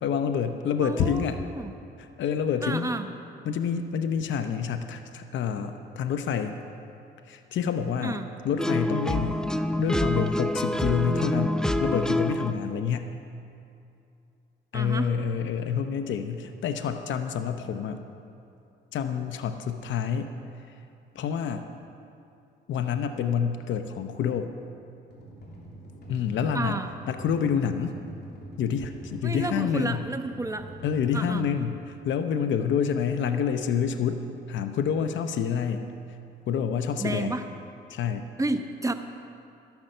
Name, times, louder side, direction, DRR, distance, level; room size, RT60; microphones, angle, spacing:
voice 1, 0.0-1.4 2.2-2.9 3.4-6.6 7.3-9.4 9.8-13.1 14.7-18.0 18.9-20.3 21.1-21.6 22.7-24.5 26.1-26.8 27.1-27.9 28.6-30.1 30.8-35.9 36.5-37.4 37.9-38.3, left 7 dB, 70° left, 8 dB, 0.8 m, -28 dB
voice 2, 0.8-1.7 2.6-3.1 8.0-8.3 14.7-15.1 26.5-26.9 29.2-30.7 31.1-31.4 37.0-37.5 38.4-38.9, right 2 dB, 15° right, 7 dB, 0.9 m, -31 dB
sound 1, 8.6-12.5, left 1 dB, 5° left, 0.5 m, -26 dB
sound 2, 25.1-31.9, right 2 dB, 55° left, 2.9 m, -45 dB
12.0 x 10.5 x 6.6 m, 2.6 s
cardioid pair, 90°, 20 cm